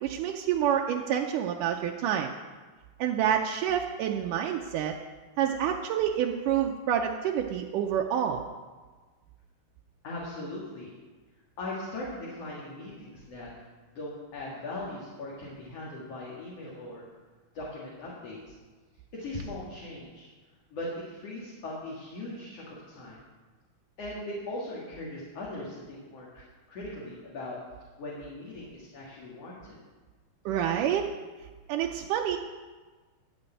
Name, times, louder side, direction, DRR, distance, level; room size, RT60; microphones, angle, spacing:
voice 1, 0.0-2.3 3.0-4.9 5.4-8.4 30.5-31.1 31.7-32.4, right 9 dB, 80° right, 2 dB, 1.9 m, -28 dB
voice 2, 10.0-10.9 11.6-13.5 13.9-17.0 17.5-18.5 19.1-20.3 20.7-23.2 24.0-27.6 28.0-29.8, left 1 dB, 45° left, -5 dB, 2.7 m, -39 dB
15.5 x 5.4 x 8.9 m, 1.4 s
omnidirectional pair, 4.4 m